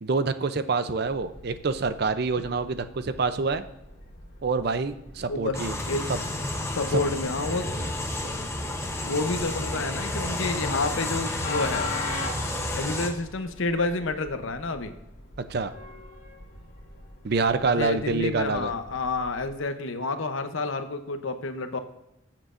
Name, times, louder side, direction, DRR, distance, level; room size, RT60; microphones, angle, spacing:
voice 1, 0.0-3.6 4.4-5.8 6.1-6.2 7.8-7.9 15.5-15.7 17.2-18.7, right 4 dB, 50° right, 11 dB, 0.5 m, -26 dB
Train, 1.0-19.6, left 2 dB, 50° left, 2.4 m, -42 dB
sound 1, 5.5-13.1, left 1 dB, 15° left, 0.8 m, -31 dB
voice 2, 5.9-6.3 6.7-7.7 9.0-11.9 12.8-14.9 17.6-21.8, left 3 dB, 75° left, 8 dB, 0.8 m, -29 dB
20.5 x 7.4 x 2.5 m, 0.88 s
head